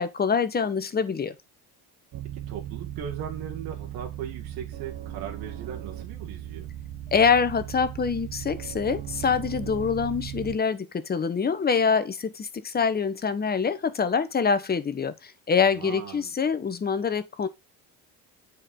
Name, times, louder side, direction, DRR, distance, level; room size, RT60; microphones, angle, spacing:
voice 1, 0.0-1.3 7.1-17.5, left 6 dB, 25° left, 1.1 m, -25 dB
sound 1, 2.1-10.6, right 12 dB, 55° right, 1.3 m, -37 dB
voice 2, 2.5-6.7 15.6-16.3, right 8 dB, 75° right, 1.9 m, -38 dB
8.6 x 4.8 x 4.7 m
cardioid pair, 125°, 36 cm